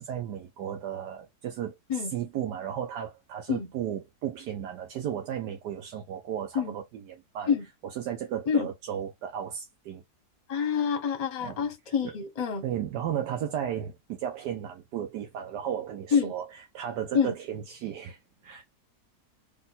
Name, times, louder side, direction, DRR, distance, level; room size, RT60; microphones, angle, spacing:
voice 1, 0.0-7.5 7.8-10.0 11.4-11.6 12.0-12.1 12.6-16.5 16.7-18.6, right 9 dB, 80° right, 1.3 m, -34 dB
voice 2, 10.5-12.6 16.1-16.3 17.1-17.3, left 7 dB, 30° left, 0.8 m, -27 dB
3.5 x 2.7 x 4.0 m
omnidirectional pair, 1.7 m